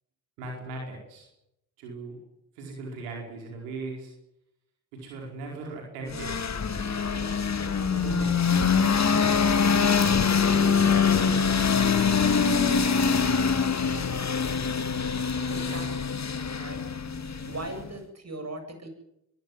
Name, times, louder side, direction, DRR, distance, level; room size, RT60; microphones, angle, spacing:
voice 1, 0.4-1.3 1.8-2.2 2.5-4.1 4.9-6.3 6.9-7.2 7.9-8.3, right 3 dB, 85° right, 0 dB, 5.1 m, -38 dB
sound 1, 6.1-17.9, left 6 dB, 35° left, 2.2 m, -24 dB
voice 2, 15.5-16.1 16.6-17.2 17.4-18.9, right 2 dB, 35° right, 6 dB, 7.8 m, -39 dB
23.0 x 15.0 x 9.5 m, 0.83 s
hypercardioid pair, 40°, 47 cm